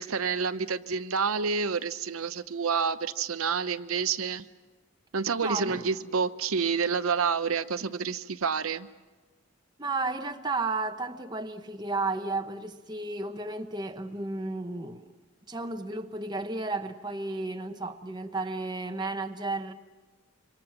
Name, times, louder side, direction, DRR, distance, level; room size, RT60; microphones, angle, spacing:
voice 1, 0.0-4.5 5.1-8.9, right 5 dB, 80° right, 0.8 m, -28 dB
voice 2, 5.4-5.8 9.8-15.1 15.5-19.7, right 3 dB, 20° right, 1.0 m, -33 dB
27.0 x 24.5 x 6.0 m
head